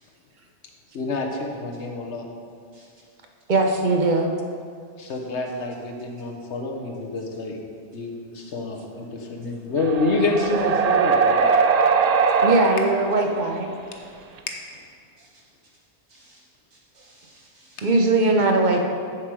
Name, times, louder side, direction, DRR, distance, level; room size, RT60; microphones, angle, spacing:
voice 1, 0.9-2.3 5.0-7.6 7.9-11.4 14.5-14.6, left 2 dB, 80° left, 1 dB, 1.3 m, -27 dB
voice 2, 3.5-4.3 12.4-13.7 17.8-18.8, right 2 dB, 45° right, 3 dB, 0.9 m, -20 dB
sound 1, 9.8-13.3 14.4-14.5, right 5 dB, 60° right, 0.4 m, -20 dB
voice 3, 16.1-16.4 16.7-18.0, right 3 dB, 85° right, -6 dB, 2.2 m, -54 dB
7.7 x 7.5 x 4.7 m, 2.2 s
omnidirectional pair, 1.2 m